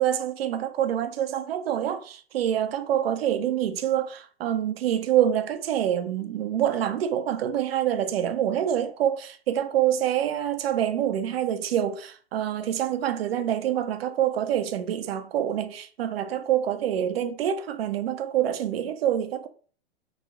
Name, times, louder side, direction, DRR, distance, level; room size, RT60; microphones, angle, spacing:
voice 1, 0.0-19.5, right 10 dB, 65° right, 0.7 m, -26 dB
3.0 x 2.3 x 3.9 m
hypercardioid pair, 120°, 32 cm